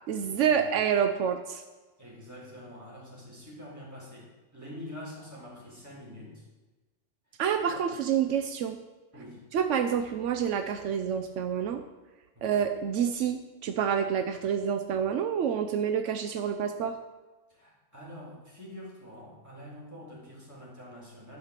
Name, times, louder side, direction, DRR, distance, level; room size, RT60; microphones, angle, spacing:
voice 1, 0.1-1.6 7.4-8.8 9.5-11.8 12.4-17.0, right 8 dB, 80° right, 8 dB, 1.0 m, -28 dB
voice 2, 2.0-6.4 9.1-9.5 12.3-12.5 17.5-21.4, left 1 dB, 15° right, -5 dB, 3.9 m, -46 dB
11.5 x 5.7 x 6.6 m, 1.2 s
omnidirectional pair, 1.2 m